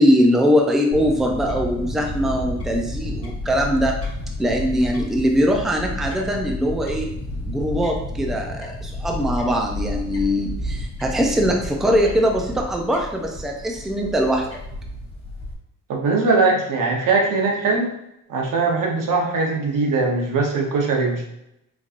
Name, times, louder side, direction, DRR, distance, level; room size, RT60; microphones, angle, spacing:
voice 1, 0.0-4.0 4.4-7.1 7.5-14.5, equal, ahead, 1 dB, 0.4 m, -21 dB
Fowl / Bird, 0.9-15.5, left 1 dB, 45° left, 1.0 m, -31 dB
voice 2, 15.9-17.9 18.3-21.2, right 3 dB, 85° right, 0 dB, 1.0 m, -20 dB
4.5 x 2.8 x 2.4 m, 0.81 s
wide cardioid pair, 165°, 32 cm